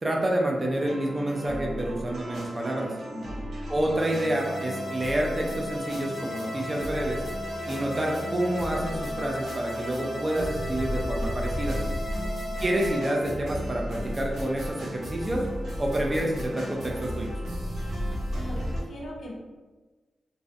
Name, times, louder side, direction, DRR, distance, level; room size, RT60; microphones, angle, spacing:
voice 1, 0.0-2.9 3.7-7.2 7.7-11.8 12.6-15.4 15.8-17.3, right 1 dB, 25° right, -1 dB, 0.3 m, -28 dB
sound 1, 0.7-18.8, equal, 70° right, 0.6 m, -34 dB
voice 2, 3.1-3.5 12.1-12.6 18.3-19.3, left 1 dB, 60° left, -3 dB, 0.5 m, -40 dB
sound 2, 4.0-13.0, left 1 dB, ahead, 0.8 m, -36 dB
2.3 x 2.1 x 2.5 m, 1.3 s
wide cardioid pair, 150°, 0 cm